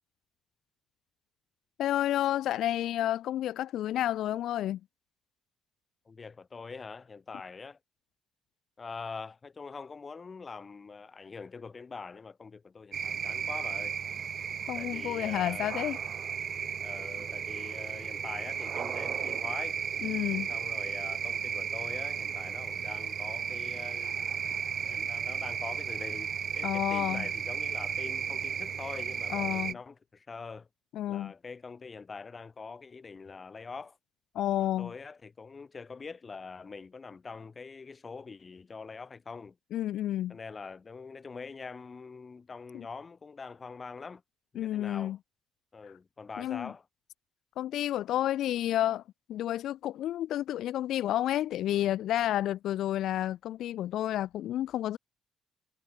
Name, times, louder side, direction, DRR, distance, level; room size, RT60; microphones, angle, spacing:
voice 1, 1.8-4.8 14.7-16.0 20.0-20.5 26.6-27.3 29.3-29.8 30.9-31.3 34.3-34.9 39.7-40.4 42.7-42.8 44.6-45.2 46.4-46.7 47.6-49.0 49.3-55.0, left 12 dB, 65° left, 0.4 m, -30 dB
voice 2, 6.1-7.8 8.8-14.0 14.8-15.7 16.8-19.8 20.5-24.1 24.8-30.7 31.1-34.0 34.6-39.6 40.3-44.2 44.5-45.2 45.7-46.9, left 4 dB, 20° left, 2.8 m, -44 dB
sound 1, 12.9-29.7, right 7 dB, 35° right, 1.1 m, -34 dB
cardioid pair, 175°, 0 cm